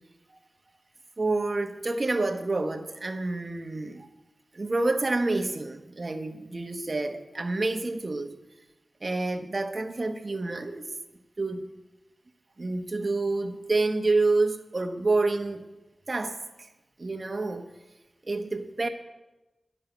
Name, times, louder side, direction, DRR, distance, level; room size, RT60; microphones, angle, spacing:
voice 1, 1.2-4.1 4.5-8.3 9.0-10.9 11.4-11.7 12.6-15.7 16.1-16.7 17.0-17.7 18.3-18.9, right 2 dB, 45° right, 1.1 m, -28 dB
12.5 x 6.5 x 9.0 m
wide cardioid pair, 60°, 0 cm